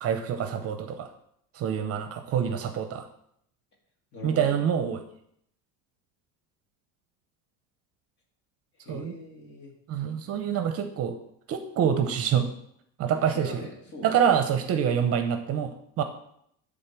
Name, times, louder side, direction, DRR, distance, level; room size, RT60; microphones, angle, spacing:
voice 1, 0.0-1.1 1.5-3.1 4.2-5.0 8.9-9.1 9.9-11.2 11.5-12.5 13.0-13.6 14.0-16.0, right 8 dB, 45° right, 8 dB, 0.8 m, -26 dB
voice 2, 4.1-4.7 8.8-9.7 13.1-14.3, left 2 dB, 30° left, -1 dB, 2.6 m, -41 dB
11.0 x 3.9 x 6.0 m, 0.71 s
cardioid pair, 140°, 34 cm